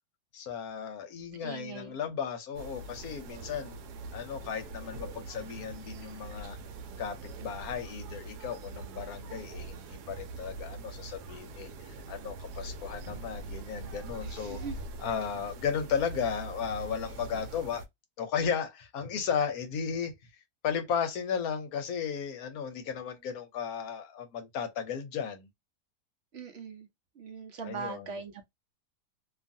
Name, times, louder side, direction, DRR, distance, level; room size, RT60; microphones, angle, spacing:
voice 1, 0.3-3.7 4.1-6.6 7.0-14.6 15.0-17.8 18.2-20.1 20.6-25.5 27.6-28.1, left 7 dB, 70° left, 1.1 m, -35 dB
voice 2, 1.4-2.0 14.2-14.8 26.3-26.9 27.2-28.4, right 5 dB, 55° right, 0.7 m, -41 dB
sound 1, 2.5-17.9, right 3 dB, 80° right, 1.1 m, -43 dB
2.8 x 2.4 x 2.6 m
omnidirectional pair, 1.7 m